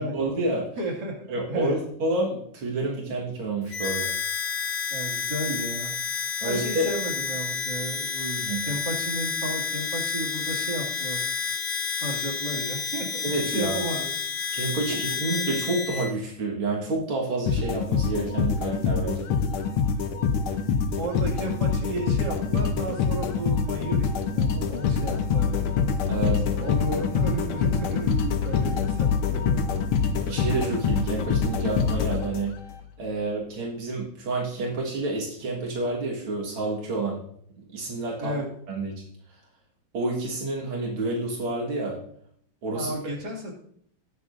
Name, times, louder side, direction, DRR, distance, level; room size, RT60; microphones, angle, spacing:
voice 1, 0.0-0.7 1.3-4.1 6.4-6.9 8.4-8.6 13.2-14.0 14.5-19.3 26.1-26.4 30.1-32.6 33.0-37.2 37.6-38.4 38.7-39.0 39.9-42.0 42.6-42.9, right 2 dB, 85° right, -2 dB, 2.5 m, -29 dB
voice 2, 0.8-1.8 4.9-5.9 6.4-11.2 12.0-14.1 14.9-15.2 21.0-25.8 26.3-29.7 38.2-38.5 42.7-43.5, right 2 dB, 50° right, -2 dB, 3.0 m, -33 dB
Harmonica, 3.7-16.1, left 6 dB, 60° left, 0.9 m, -30 dB
sound 1, 17.5-32.7, left 6 dB, 85° left, 1.7 m, -25 dB
19.5 x 6.8 x 2.6 m, 0.66 s
omnidirectional pair, 2.3 m